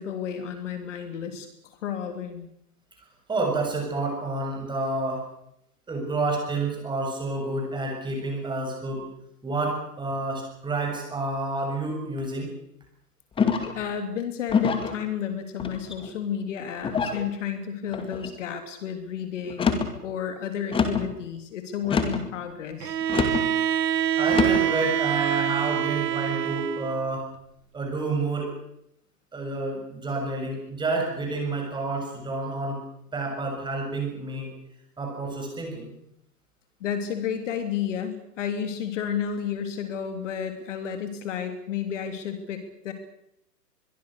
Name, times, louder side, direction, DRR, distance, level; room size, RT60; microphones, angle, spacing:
voice 1, 0.0-2.5 13.7-23.0 36.8-42.9, left 8 dB, 50° left, 7 dB, 3.3 m, -32 dB
voice 2, 3.3-5.3 5.9-9.1 9.4-12.5 23.9-27.3 27.7-28.5 29.3-32.8 33.1-34.5 35.0-35.9, right 3 dB, 10° right, 2 dB, 7.2 m, -29 dB
sound 1, 13.4-13.8 14.5-15.0 15.6-16.1 16.8-17.2 17.9-18.3 19.5-19.9 20.7-21.1 21.8-22.3 23.1-23.5 24.3-24.7, left 5 dB, 10° left, 2.3 m, -25 dB
Bowed string instrument, 22.8-27.1, right 10 dB, 80° right, 0.8 m, -25 dB
24.0 x 22.5 x 6.7 m, 0.76 s
hypercardioid pair, 130°, 48 cm